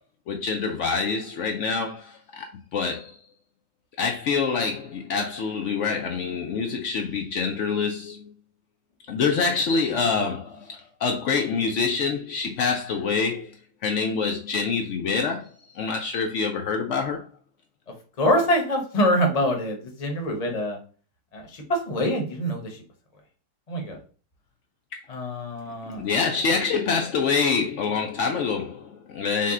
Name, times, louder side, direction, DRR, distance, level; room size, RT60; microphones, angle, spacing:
voice 1, 0.3-3.2 4.0-8.3 9.1-13.6 13.8-17.3 26.0-29.5, left 5 dB, 85° left, 0.6 m, -26 dB
voice 2, 18.2-20.8 21.3-22.8 23.7-24.0 25.1-26.1, equal, 35° left, 0.7 m, -25 dB
5.6 x 2.2 x 3.7 m
omnidirectional pair, 1.8 m